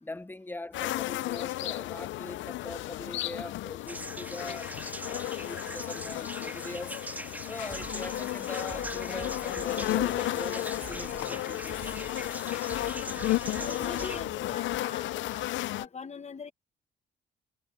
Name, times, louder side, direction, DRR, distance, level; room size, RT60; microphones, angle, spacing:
voice 1, 0.0-4.7 5.0-7.0 7.4-11.9 13.5-14.2, left 2 dB, 10° left, 0.9 m, -42 dB
sound 1, 0.7-15.9, left 16 dB, 75° left, 0.4 m, -33 dB
sound 2, 3.9-14.2, right 1 dB, 10° right, 2.0 m, -42 dB
Drum kit, 7.0-7.1 7.6-14.8, right 7 dB, 50° right, 3.7 m, -48 dB
voice 2, 13.6-16.5, left 5 dB, 35° left, 1.3 m, -43 dB
cardioid pair, 90°, 20 cm